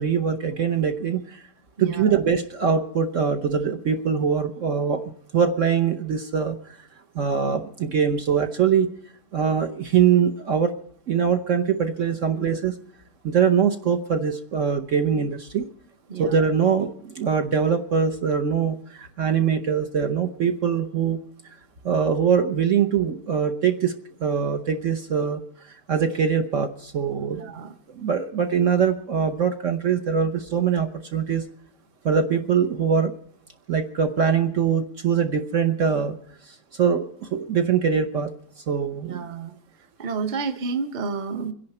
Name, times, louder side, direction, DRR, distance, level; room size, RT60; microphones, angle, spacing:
voice 1, 0.0-1.4 1.8-5.0 5.3-6.9 7.1-8.9 9.3-10.7 11.1-12.7 13.2-15.7 16.2-21.2 21.8-23.9 24.2-27.5 27.9-31.4 32.0-33.1 33.7-36.1 36.4-38.3 38.7-39.2, right 7 dB, 50° right, 7 dB, 1.2 m, -23 dB
voice 2, 27.3-27.7 39.1-39.5 40.0-41.5, right 5 dB, 30° right, 9 dB, 1.0 m, -30 dB
25.0 x 11.0 x 4.3 m, 0.63 s
omnidirectional pair, 1.8 m